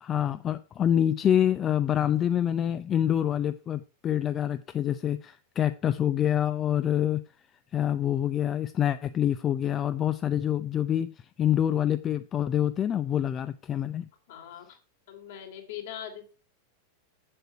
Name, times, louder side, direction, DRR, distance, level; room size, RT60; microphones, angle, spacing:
voice 1, 0.0-7.2 7.7-14.0, left 10 dB, 25° left, 0.5 m, -26 dB
voice 2, 14.3-14.7 15.1-16.3, left 10 dB, 55° left, 2.9 m, -41 dB
8.1 x 7.8 x 4.4 m
figure-of-eight pair, 90°, 0 cm